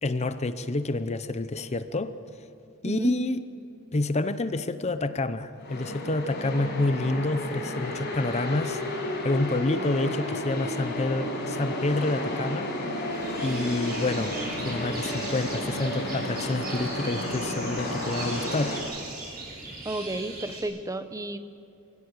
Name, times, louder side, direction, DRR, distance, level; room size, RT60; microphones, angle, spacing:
voice 1, 0.0-2.1 2.8-3.4 3.9-8.8 9.2-12.7 13.4-18.8, left 2 dB, 35° left, 12 dB, 0.7 m, -28 dB
voice 2, 2.8-3.2 9.8-10.1 19.8-21.4, right 2 dB, 15° right, 10 dB, 0.8 m, -33 dB
sound 1, 5.6-18.8, left 1 dB, 55° left, 5.8 m, -32 dB
sound 2, 13.1-20.6, right 3 dB, 50° right, 6.7 m, -39 dB
24.5 x 16.5 x 8.3 m, 2.6 s
head